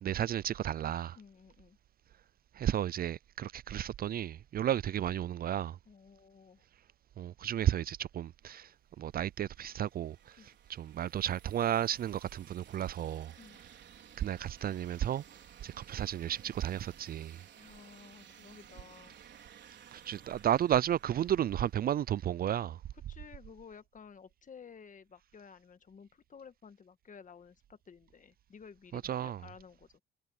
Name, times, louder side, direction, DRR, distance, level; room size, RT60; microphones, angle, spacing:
voice 1, 0.0-1.2 2.6-5.8 7.2-8.7 9.0-10.4 10.7-13.3 14.2-15.2 15.6-17.4 19.9-22.8 29.1-29.4, right 11 dB, 50° right, 0.4 m, -33 dB
voice 2, 1.1-1.8 5.8-6.6 10.4-10.6 13.4-13.6 17.6-19.1 22.9-30.0, left 6 dB, 40° left, 1.5 m, -54 dB
sound 1, 8.9-22.6, right 9 dB, 65° right, 4.4 m, -57 dB
cardioid pair, 90°, 20 cm